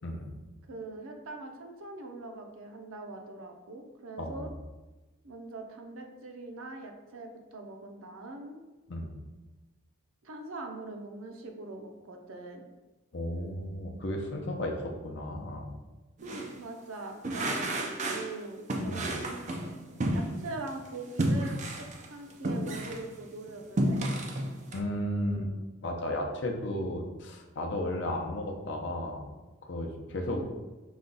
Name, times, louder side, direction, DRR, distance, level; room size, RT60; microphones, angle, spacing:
voice 1, 0.7-4.5 5.2-8.6 10.2-12.6 16.2-19.5 20.1-24.1 30.3-30.6, right 2 dB, 80° right, 3 dB, 0.6 m, -42 dB
voice 2, 4.2-4.5 8.9-9.1 13.1-15.7 18.9-19.1 24.7-25.5 25.8-29.2 29.6-30.4, left 1 dB, 55° left, 2 dB, 0.6 m, -34 dB
sound 1, 16.2-16.5 17.2-18.3 18.7-20.7 21.2-23.1 23.5-24.8, right 1 dB, 35° right, 0.4 m, -31 dB
5.0 x 2.3 x 3.9 m, 1.2 s
head